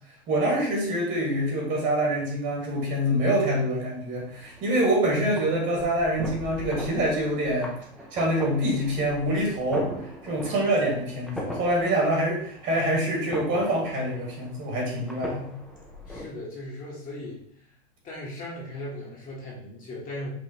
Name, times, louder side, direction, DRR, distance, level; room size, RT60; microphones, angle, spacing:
voice 1, 0.3-7.8 8.1-9.9 10.2-15.5, right 1 dB, 35° right, -1 dB, 1.6 m, -25 dB
sound 1, 4.2-16.3, equal, ahead, 0.4 m, -40 dB
voice 2, 16.1-17.7 18.0-20.3, left 1 dB, 25° left, -4 dB, 1.1 m, -38 dB
5.1 x 2.8 x 2.8 m, 0.64 s
hypercardioid pair, 130°, 33 cm